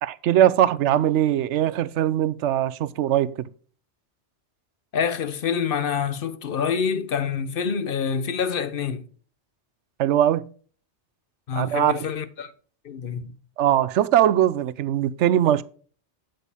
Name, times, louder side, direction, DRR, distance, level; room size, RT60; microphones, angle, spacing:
voice 1, 0.0-3.3 10.0-10.5 11.6-12.0 13.6-15.6, right 11 dB, 80° right, 0.9 m, -21 dB
voice 2, 4.9-9.0 11.5-12.5 12.8-13.3, left 6 dB, 55° left, 0.9 m, -26 dB
8.2 x 8.1 x 3.5 m
omnidirectional pair, 1.2 m